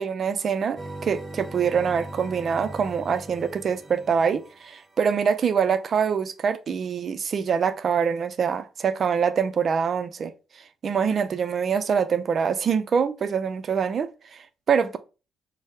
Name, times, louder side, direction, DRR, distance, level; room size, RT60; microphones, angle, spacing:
voice 1, 0.0-10.3 10.8-15.0, right 6 dB, 50° right, 0.4 m, -25 dB
sound 1, 0.8-5.0, right 1 dB, 25° right, 0.8 m, -40 dB
4.3 x 2.0 x 3.5 m
cardioid pair, 90°, 0 cm